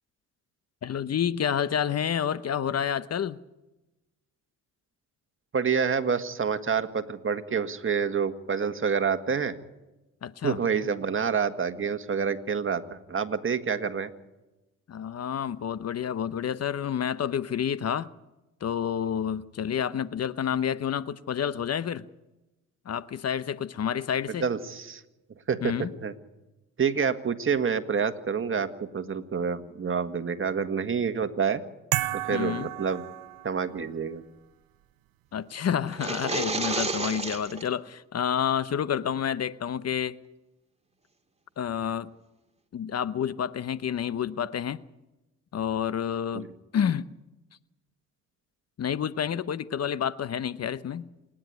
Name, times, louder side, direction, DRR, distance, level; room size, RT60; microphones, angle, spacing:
voice 1, 0.8-3.4 10.2-10.6 14.9-18.1 18.6-22.0 22.9-24.5 25.6-25.9 32.3-32.7 35.3-40.2 41.6-42.1 42.7-44.8 45.5-46.5 46.7-47.1 48.8-51.1, left 8 dB, 50° left, 16 dB, 0.9 m, -29 dB
voice 2, 5.5-9.6 10.4-14.1 24.4-25.0 25.5-25.8 26.0-26.1 26.8-31.6 32.1-33.0 33.4-34.2 46.3-46.5, right 6 dB, 40° right, 9 dB, 1.7 m, -28 dB
sound 1, 31.9-33.8, right 16 dB, 85° right, 0.8 m, -32 dB
sound 2, 35.9-37.7, right 3 dB, 20° right, 2.5 m, -30 dB
27.5 x 10.5 x 9.4 m, 1.0 s
supercardioid pair, 60°, 33 cm